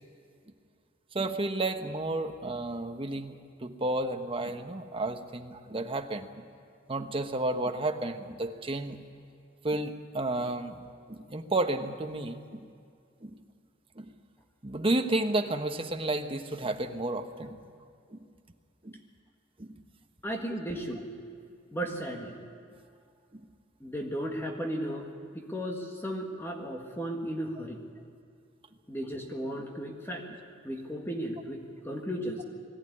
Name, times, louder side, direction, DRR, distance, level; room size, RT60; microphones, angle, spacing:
voice 1, 1.1-3.3 3.6-6.5 6.9-9.1 9.6-12.7 13.2-13.4 14.0-14.1 14.6-17.6 18.1-18.2 18.8-19.0 19.6-19.8 23.3-23.4, right 2 dB, 25° right, 6 dB, 1.1 m, -32 dB
voice 2, 20.2-21.1 21.7-22.4 23.8-27.8 28.9-30.2 30.6-32.4, equal, 10° left, 1 dB, 1.7 m, -35 dB
21.5 x 14.5 x 9.9 m, 2.3 s
head